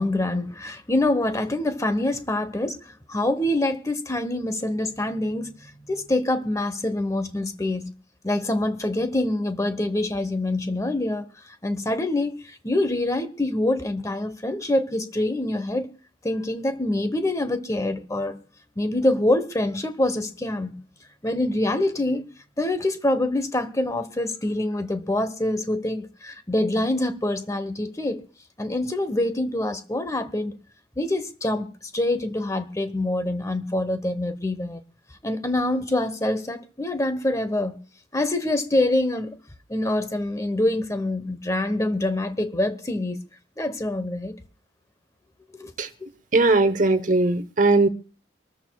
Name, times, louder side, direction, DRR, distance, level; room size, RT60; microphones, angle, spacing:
voice 1, 0.0-2.8 3.1-5.5 5.9-7.9 8.2-11.3 11.6-15.9 16.2-18.4 18.8-20.8 21.2-22.3 22.6-28.2 28.6-30.5 31.0-34.8 35.2-37.8 38.1-39.4 39.7-43.2 43.6-44.4 45.6-45.7, left 1 dB, 15° left, 1.0 m, -25 dB
voice 2, 46.3-47.9, right 2 dB, 45° right, 0.9 m, -19 dB
25.0 x 13.5 x 2.3 m
head